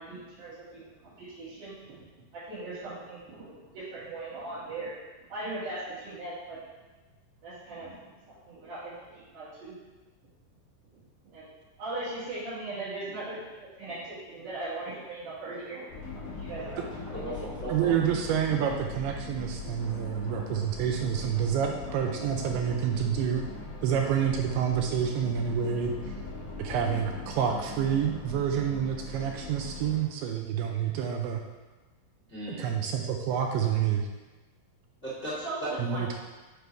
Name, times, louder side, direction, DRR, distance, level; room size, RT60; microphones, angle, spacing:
voice 1, 0.0-2.0 2.3-4.9 5.3-6.6 7.4-7.9 8.4-9.7 11.2-11.5 11.8-13.4 13.8-17.1 19.8-20.0 20.3-20.6 35.4-36.0, right 2 dB, 55° right, -14 dB, 3.3 m, -39 dB
sound 1, 15.9-30.0, left 3 dB, 55° left, 1.7 m, -40 dB
voice 2, 17.1-17.9 32.3-32.7 35.0-35.7, right 1 dB, 85° left, -10 dB, 0.6 m, -36 dB
voice 3, 17.7-23.5 23.8-26.1 26.6-31.4 32.6-34.1 35.8-36.1, right 8 dB, 80° right, 2 dB, 2.4 m, -28 dB
6.8 x 5.0 x 4.6 m, 1.2 s
omnidirectional pair, 4.8 m